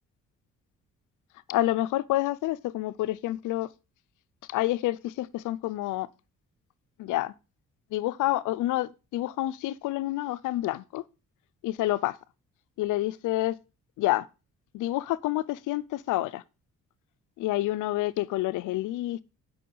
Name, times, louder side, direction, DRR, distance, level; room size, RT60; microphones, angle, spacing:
voice 1, 1.5-3.7 4.5-6.1 7.0-7.3 7.9-11.0 11.6-12.1 12.8-13.6 14.0-14.3 14.7-16.4 17.4-19.2, left 16 dB, 85° left, 0.6 m, -28 dB
9.3 x 5.7 x 5.5 m
cardioid pair, 90°, 30 cm